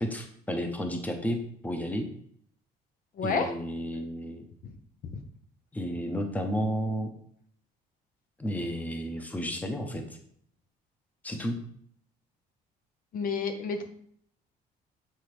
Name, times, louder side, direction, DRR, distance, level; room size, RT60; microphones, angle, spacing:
voice 1, 0.0-1.4 1.6-2.1 3.2-4.5 5.7-7.1 8.4-10.2 11.2-11.6, equal, 10° left, 5 dB, 0.8 m, -32 dB
voice 2, 3.2-3.5 4.6-4.7 5.1-5.2 13.1-14.0, left 4 dB, 55° left, 7 dB, 0.8 m, -30 dB
7.7 x 3.9 x 3.3 m, 0.65 s
cardioid pair, 110°, 17 cm